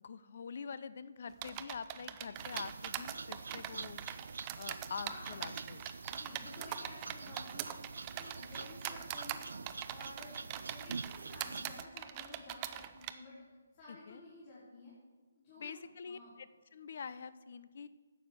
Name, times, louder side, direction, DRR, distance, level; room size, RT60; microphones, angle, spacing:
voice 1, 0.0-4.0 4.6-5.8 7.3-7.4 13.9-14.2 15.6-17.9, left 6 dB, 55° left, 15 dB, 0.6 m, -45 dB
sound 1, 1.4-13.1, right 12 dB, 25° right, 0.5 m, -43 dB
sound 2, 2.3-11.8, right 4 dB, 75° right, 0.4 m, -46 dB
voice 2, 5.0-5.4 6.1-7.8 8.1-9.5 9.9-13.4 13.7-14.9 15.3-16.3, left 2 dB, 35° left, -9 dB, 4.4 m, -53 dB
11.5 x 7.7 x 6.9 m, 1.4 s
hypercardioid pair, 155°, 0 cm